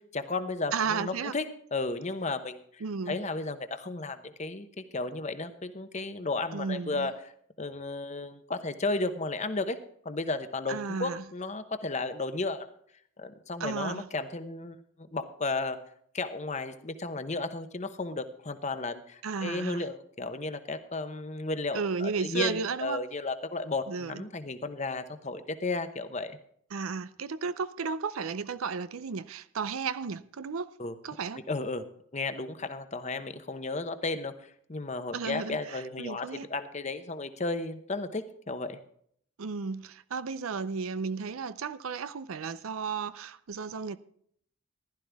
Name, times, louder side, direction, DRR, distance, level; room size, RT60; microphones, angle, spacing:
voice 1, 0.1-1.4 1.7-7.1 7.6-9.8 10.0-12.7 13.2-15.8 16.1-26.4 30.8-30.9 31.5-31.8 32.1-34.3 34.7-38.8, left 3 dB, 35° left, 0.9 m, -34 dB
voice 2, 0.7-1.3 2.8-3.2 6.5-7.1 10.7-11.2 13.6-14.1 19.2-19.8 21.7-23.0 23.9-24.2 26.7-30.7 31.0-31.4 35.1-36.5 39.4-44.0, right 5 dB, 85° right, 0.5 m, -34 dB
15.0 x 12.0 x 3.5 m
head